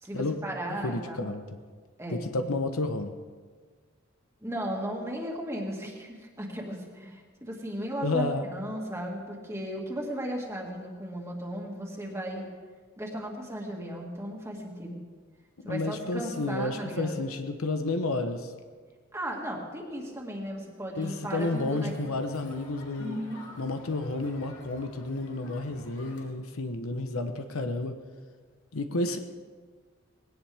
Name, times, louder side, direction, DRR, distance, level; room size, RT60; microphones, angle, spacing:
voice 1, 0.0-1.3 2.0-2.5 4.4-12.4 13.0-15.0 15.6-17.2 19.1-21.9 23.0-23.5, equal, 15° right, -1 dB, 2.2 m, -36 dB
voice 2, 0.8-1.4 2.1-3.1 8.0-8.5 15.6-18.5 21.0-23.2 23.6-27.9 28.7-29.2, left 2 dB, 85° left, 7 dB, 1.0 m, -31 dB
Crowd, 21.0-26.3, left 2 dB, 60° left, 2.8 m, -50 dB
20.5 x 17.5 x 3.5 m, 1.5 s
head